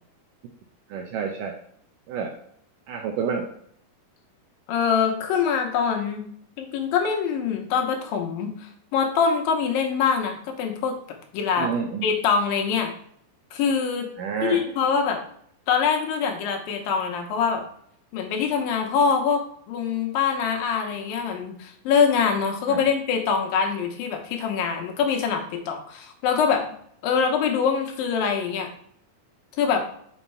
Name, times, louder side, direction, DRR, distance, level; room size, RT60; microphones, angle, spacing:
voice 1, 0.9-1.5 2.1-2.3 2.9-3.5 11.6-12.1 14.2-14.6 22.7-22.9, right 6 dB, 75° right, 2 dB, 2.1 m, -28 dB
voice 2, 4.7-6.2 6.6-11.7 12.0-12.9 13.5-14.1 14.4-15.2 15.7-17.7 18.1-19.4 19.7-26.7 27.0-28.7 29.6-29.8, left 6 dB, 85° left, 3 dB, 2.7 m, -24 dB
5.8 x 5.4 x 4.5 m, 0.66 s
omnidirectional pair, 4.1 m